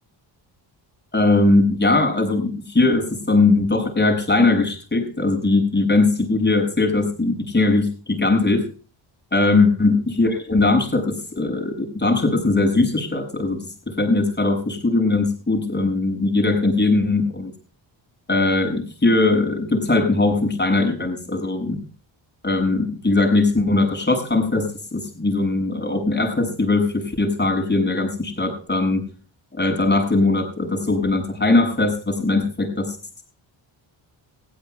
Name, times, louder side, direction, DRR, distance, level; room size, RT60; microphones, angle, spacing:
voice 1, 1.1-8.7 9.3-17.5 18.3-21.8 22.4-29.0 29.5-33.0, left 2 dB, 20° left, 4 dB, 7.2 m, -20 dB
19.0 x 16.0 x 2.3 m, 0.36 s
cardioid pair, 90°, 48 cm